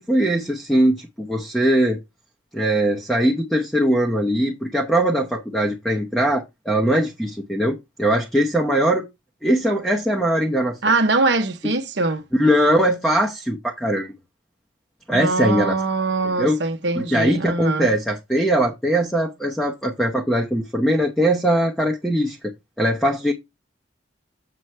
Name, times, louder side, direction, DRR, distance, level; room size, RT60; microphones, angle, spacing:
voice 1, 0.0-2.0 2.5-9.0 9.4-10.9 12.3-14.1 15.1-15.7 16.2-16.6 16.9-22.4 22.8-23.3, right 1 dB, 5° left, 0.9 m, -21 dB
voice 2, 10.8-12.2 15.1-17.9, right 3 dB, 60° right, 0.9 m, -22 dB
7.6 x 7.0 x 3.3 m
head